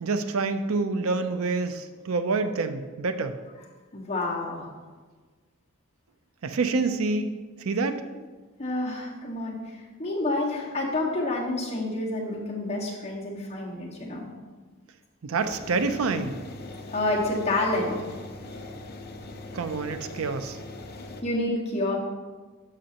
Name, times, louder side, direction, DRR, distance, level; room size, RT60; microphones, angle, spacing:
voice 1, 0.0-3.4 6.4-7.3 7.6-8.0 15.2-16.4 19.5-20.6, right 3 dB, 75° right, 9 dB, 0.5 m, -27 dB
voice 2, 3.9-4.7 8.6-14.3 16.9-18.0 21.2-22.0, left 2 dB, 30° left, -4 dB, 1.7 m, -29 dB
sound 1, 15.4-21.2, left 2 dB, 50° left, 0.8 m, -41 dB
11.5 x 6.3 x 2.9 m, 1.3 s
head